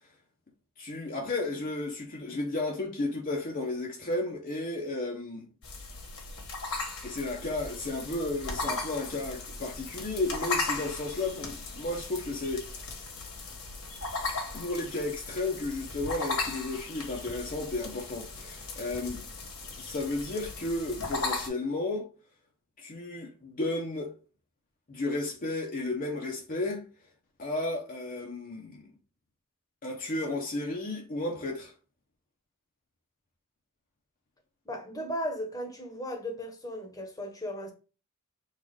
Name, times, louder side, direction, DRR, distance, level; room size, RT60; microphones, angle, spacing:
voice 1, 0.8-5.5 7.0-12.9 14.5-19.2 19.7-22.1 22.8-24.1 24.9-26.8 27.4-28.9 29.8-31.7, left 2 dB, 40° left, 0.7 m, -33 dB
sound 1, 5.6-21.5, left 3 dB, 70° left, 1.5 m, -37 dB
voice 2, 34.6-37.7, equal, 15° left, 1.0 m, -36 dB
4.0 x 2.4 x 4.7 m
head